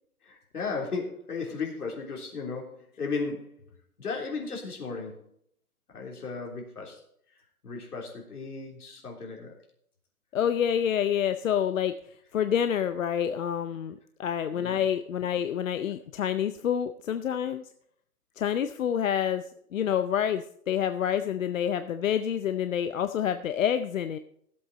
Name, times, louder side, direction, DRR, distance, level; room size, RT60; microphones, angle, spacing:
voice 1, 0.3-3.6 4.0-5.2 5.9-7.0 7.6-9.6 14.5-14.8, left 4 dB, 75° left, 0 dB, 3.6 m, -35 dB
voice 2, 10.3-11.9 12.3-17.6 18.4-19.4 19.7-24.2, left 9 dB, 60° left, 11 dB, 0.7 m, -27 dB
15.5 x 7.9 x 4.1 m, 0.66 s
hypercardioid pair, 150°, 45 cm